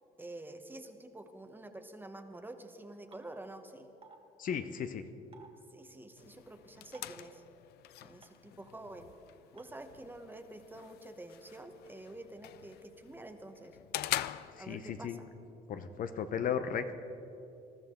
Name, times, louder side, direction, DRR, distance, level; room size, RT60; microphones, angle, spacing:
voice 1, 0.2-3.9 5.7-7.4 8.0-9.1 9.5-13.8 14.6-15.3, right 2 dB, 10° right, 7 dB, 1.0 m, -48 dB
sound 1, 3.1-3.2 4.0-4.2 5.3-5.5 6.9-7.2 8.2-8.3 9.6-9.7, right 5 dB, 35° right, 1.6 m, -54 dB
voice 2, 4.4-5.0 14.6-15.2 15.7-16.9, left 7 dB, 55° left, 9 dB, 0.8 m, -35 dB
sound 2, 6.2-15.2, left 14 dB, 75° left, 0.4 m, -44 dB
21.0 x 13.0 x 3.8 m, 2.9 s
cardioid pair, 110°, 17 cm